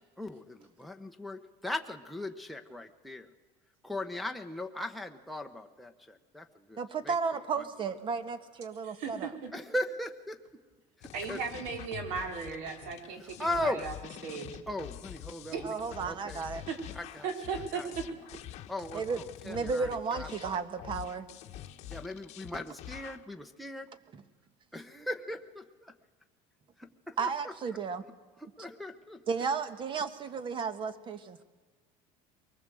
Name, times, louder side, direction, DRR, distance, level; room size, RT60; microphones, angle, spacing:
voice 1, 0.2-3.3 3.8-7.2 7.6-7.7 9.5-10.4 11.0-11.4 13.2-13.8 14.7-15.8 16.0-16.4 16.9-17.3 17.7-17.9 18.7-20.3 21.9-23.9 24.7-25.9 26.8-27.8 28.4-29.4, left 1 dB, ahead, 4 dB, 1.0 m, -38 dB
voice 2, 6.8-9.3 15.6-16.6 18.9-21.3 24.1-24.2 27.2-28.0 29.3-31.4, right 5 dB, 35° right, 12 dB, 1.5 m, -34 dB
voice 3, 8.8-9.5 11.1-13.9 14.2-14.5 15.5-15.6 16.7-16.8 17.2-18.0, right 5 dB, 75° right, 4 dB, 4.0 m, -36 dB
sound 1, 11.0-23.2, left 12 dB, 55° left, 1.2 m, -46 dB
23.0 x 19.5 x 7.8 m, 1.3 s
cardioid pair, 135°, 14 cm